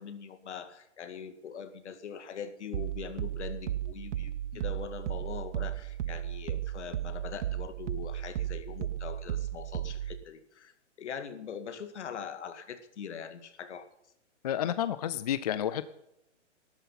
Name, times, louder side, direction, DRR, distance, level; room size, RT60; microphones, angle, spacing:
voice 1, 0.0-10.7 11.0-13.9, left 7 dB, 70° left, 10 dB, 2.0 m, -42 dB
sound 1, 2.7-10.2, right 12 dB, 80° right, 0.5 m, -35 dB
voice 2, 14.4-15.9, left 10 dB, 35° left, 14 dB, 0.5 m, -30 dB
13.0 x 13.0 x 5.7 m, 0.82 s
hypercardioid pair, 155°, 36 cm